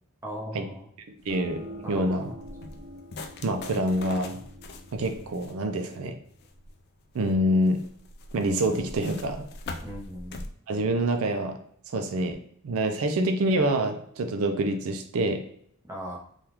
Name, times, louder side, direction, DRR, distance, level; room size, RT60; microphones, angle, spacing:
voice 1, 0.2-0.9 1.8-2.4 9.8-10.5 15.9-16.2, equal, 10° right, -4 dB, 0.8 m, -38 dB
sound 1, 1.2-10.5, left 3 dB, 45° left, 0.3 m, -43 dB
sound 2, 1.3-6.7, equal, 45° right, 0.9 m, -45 dB
voice 2, 1.3-2.3 3.4-4.4 4.9-6.2 7.1-7.8 8.3-9.5 10.7-11.6 11.9-12.4 12.6-15.4, right 1 dB, 70° right, 6 dB, 0.4 m, -26 dB
3.4 x 2.3 x 2.9 m, 0.65 s
head